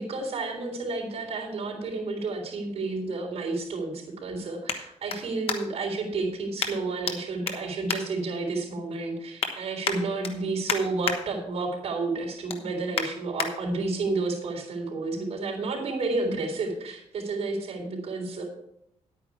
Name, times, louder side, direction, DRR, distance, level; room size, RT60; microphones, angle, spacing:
voice 1, 0.0-18.4, right 3 dB, 65° right, 0 dB, 3.7 m, -31 dB
sound 1, 1.8-5.9 6.6-7.2 7.4-8.7 9.1-9.5 9.8-11.2 11.6-11.9 12.2-13.5 14.0-14.1, left 6 dB, 55° left, 1.2 m, -33 dB
10.5 x 8.9 x 4.7 m, 0.78 s
wide cardioid pair, 155°, 12 cm